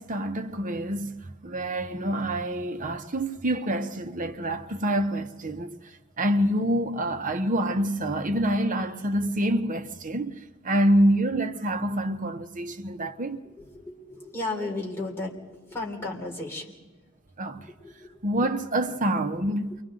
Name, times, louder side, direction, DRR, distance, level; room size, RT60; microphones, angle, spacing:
voice 1, 0.0-5.8 6.2-10.4 10.6-13.4 17.4-17.6 18.2-19.7, right 1 dB, 40° right, 1.0 m, -26 dB
voice 2, 13.4-16.8 17.6-18.2, left 2 dB, 10° left, 3.6 m, -35 dB
29.0 x 23.5 x 3.9 m
head